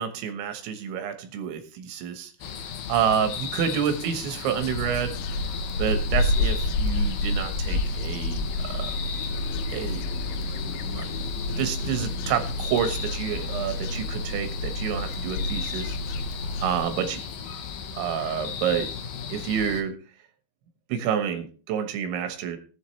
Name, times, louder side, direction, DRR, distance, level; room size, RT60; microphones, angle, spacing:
voice 1, 0.0-2.3 2.9-5.4 5.8-9.0 9.7-10.0 10.9-11.1 11.6-16.0 16.6-17.2 17.9-18.9 19.3-20.0 20.9-22.6, right 8 dB, 80° right, 7 dB, 3.5 m, -28 dB
sound 1, 2.4-19.8, left 7 dB, 70° left, 2.3 m, -36 dB
sound 2, 4.6-16.8, left 1 dB, 90° left, 3.2 m, -29 dB
19.0 x 7.5 x 3.2 m, 0.37 s
omnidirectional pair, 5.4 m